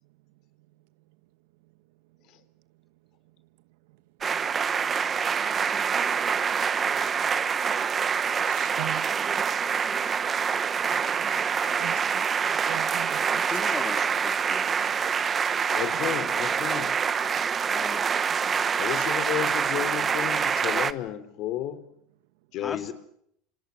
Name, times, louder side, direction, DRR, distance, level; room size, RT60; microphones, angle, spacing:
sound 1, 4.2-20.9, right 6 dB, 25° right, 1.1 m, -26 dB
voice 1, 8.5-9.4 11.2-11.3 11.8-12.2 12.5-13.4, right 19 dB, 75° right, 1.2 m, -40 dB
voice 2, 13.3-14.7 17.7-18.1 22.6-22.9, left 4 dB, 20° left, 3.4 m, -38 dB
voice 3, 15.5-16.9 18.8-21.8 22.5-22.9, left 12 dB, 55° left, 3.3 m, -32 dB
29.0 x 26.5 x 6.5 m
supercardioid pair, 130°, 0 cm